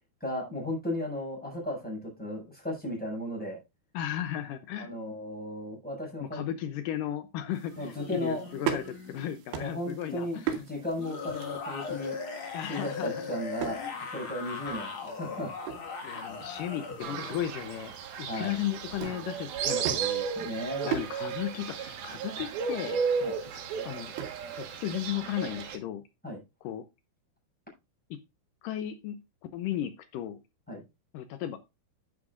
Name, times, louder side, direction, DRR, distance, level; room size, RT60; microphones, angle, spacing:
voice 1, 0.2-3.6 4.8-6.4 7.8-8.5 9.5-12.1 12.7-15.6 18.3-18.5 20.3-21.0 23.2-23.3 26.2-26.4 30.7-30.8, left 1 dB, ahead, -2 dB, 6.4 m, -35 dB
voice 2, 3.9-4.9 6.2-10.6 12.5-13.2 13.7-14.0 14.8-14.9 16.0-20.3 20.8-23.0 23.5-24.1 24.5-26.0 26.6-26.8 28.1-28.2 28.6-29.2 29.5-30.4 31.1-31.7, left 11 dB, 85° left, 10 dB, 1.9 m, -35 dB
sound 1, 7.5-25.1, right 9 dB, 85° right, 3.9 m, -41 dB
sound 2, 7.7-9.4 10.9-17.5, left 4 dB, 45° left, 1.8 m, -39 dB
Fowl, 17.0-25.8, right 6 dB, 65° right, 3.2 m, -34 dB
11.0 x 9.8 x 2.5 m, 0.24 s
omnidirectional pair, 4.8 m